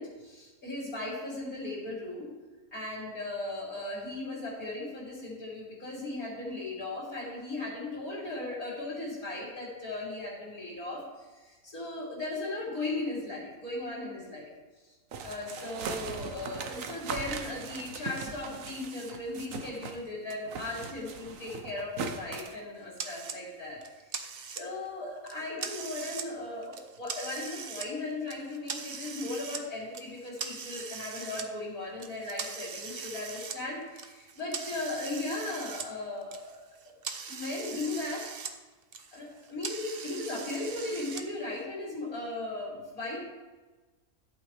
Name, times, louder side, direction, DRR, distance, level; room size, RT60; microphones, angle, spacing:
voice 1, 0.0-2.3 2.7-14.5 15.2-24.2 24.6-36.5 37.3-38.3 39.1-43.2, left 2 dB, 70° left, -6 dB, 3.4 m, -37 dB
sound 1, 15.1-20.0 20.3-22.6, right 5 dB, 65° right, 1.2 m, -39 dB
sound 2, 23.0-23.4 23.8-24.9 25.3-26.3 26.6-27.9 28.3-29.6 29.9-31.4 32.0-35.9 36.2-38.5 38.8-41.2, right 6 dB, 50° right, 0.8 m, -40 dB
13.5 x 8.6 x 3.3 m, 1.3 s
omnidirectional pair, 1.6 m